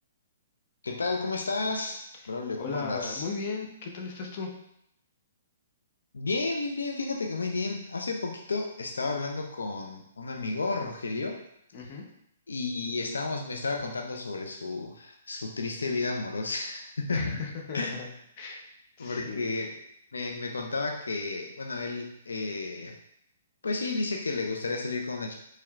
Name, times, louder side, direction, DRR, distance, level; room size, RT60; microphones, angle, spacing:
voice 1, 0.8-3.3 6.1-11.4 11.8-11.9 12.5-17.3 17.7-18.0 19.0-19.8 20.1-23.0 23.6-25.3, left 3 dB, 85° left, 2 dB, 0.4 m, -32 dB
voice 2, 2.6-4.5 11.7-12.1 17.1-18.1 18.4-18.6 19.0-19.5, left 4 dB, 45° left, 1 dB, 0.8 m, -36 dB
4.4 x 3.1 x 2.4 m, 0.76 s
hypercardioid pair, 135°, 0 cm